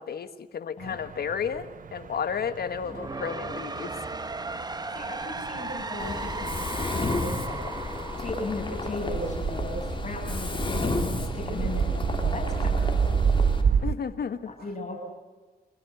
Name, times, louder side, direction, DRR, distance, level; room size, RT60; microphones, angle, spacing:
voice 1, 0.0-4.0 11.5-11.7 13.8-14.5, left 7 dB, 70° left, 11 dB, 1.4 m, -32 dB
sound 1, 0.8-13.9, right 6 dB, 55° right, 0.8 m, -30 dB
sound 2, 2.7-9.7, right 3 dB, 25° right, 1.3 m, -36 dB
voice 2, 4.9-7.8 8.2-13.2 14.5-15.0, left 2 dB, 45° left, 1 dB, 6.7 m, -37 dB
Mechanisms, 6.0-13.6, left 3 dB, 30° left, 3.2 m, -32 dB
25.0 x 16.5 x 8.0 m, 1.3 s
cardioid pair, 70°, 16 cm